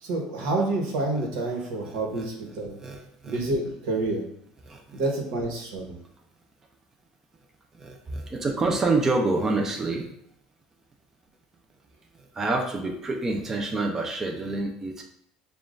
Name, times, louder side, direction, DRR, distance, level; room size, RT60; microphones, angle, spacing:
voice 1, 0.0-2.8 3.2-4.2 4.9-5.9, right 2 dB, 85° right, 0 dB, 1.1 m, -28 dB
voice 2, 1.9-2.3 2.8-3.4 4.7-5.0 7.8-10.1 12.4-15.0, right 3 dB, 20° right, 2 dB, 0.5 m, -27 dB
6.9 x 2.3 x 2.5 m, 0.73 s
cardioid pair, 150°, 2 cm